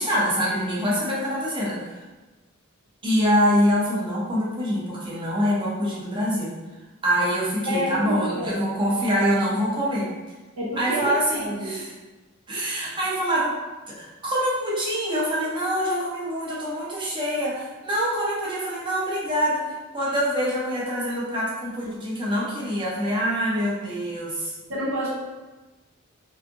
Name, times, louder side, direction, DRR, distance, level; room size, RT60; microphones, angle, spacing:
voice 1, 0.0-2.0 3.0-6.5 7.0-10.1 10.8-11.9 12.5-13.5 13.9-24.5, equal, 25° right, -5 dB, 0.6 m, -25 dB
voice 2, 7.7-8.6 10.6-11.8 24.7-25.1, right 1 dB, 70° right, -5 dB, 0.6 m, -28 dB
2.5 x 2.4 x 2.5 m, 1.2 s
head